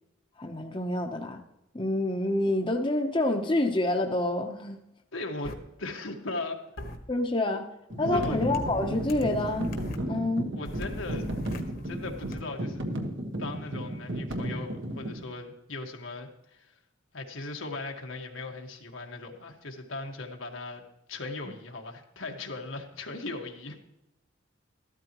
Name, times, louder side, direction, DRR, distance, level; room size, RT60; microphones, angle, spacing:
voice 1, 0.4-1.4 1.7-4.8 7.1-7.7 8.0-9.7 10.1-10.5, left 1 dB, 25° left, 4 dB, 0.8 m, -27 dB
voice 2, 5.1-6.9 7.9-8.4 10.5-11.3 11.8-12.8 13.4-16.7 17.1-20.8 21.1-23.8, left 2 dB, 85° left, 2 dB, 1.7 m, -38 dB
sound 1, 5.4-5.5 6.8-7.0 8.1-10.0 10.6-12.4, left 1 dB, 50° left, 1.2 m, -40 dB
sound 2, 7.9-15.2, right 1 dB, 80° right, 1.5 m, -34 dB
14.0 x 13.0 x 3.0 m, 0.86 s
head